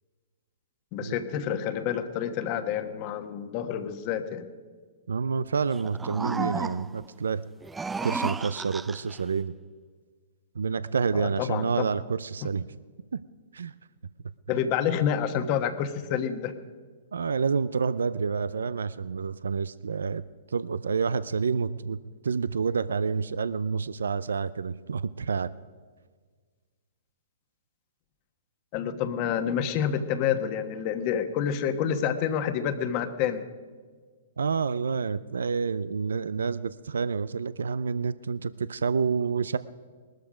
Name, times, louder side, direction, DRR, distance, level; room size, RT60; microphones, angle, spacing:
voice 1, 0.9-4.5 11.1-11.8 12.4-12.5 14.5-16.5 28.7-33.4, left 8 dB, 40° left, 9 dB, 1.3 m, -28 dB
voice 2, 5.1-7.5 8.0-9.5 10.6-12.7 13.1-13.2 13.5-13.7 17.1-20.2 20.5-22.0 22.2-25.5 34.4-39.6, right 5 dB, 85° right, 17 dB, 0.5 m, -28 dB
sound 1, 5.7-7.1 7.6-9.2, right 4 dB, 10° right, 0.3 m, -33 dB
19.5 x 13.0 x 5.2 m, 1.5 s
hypercardioid pair, 130°, 0 cm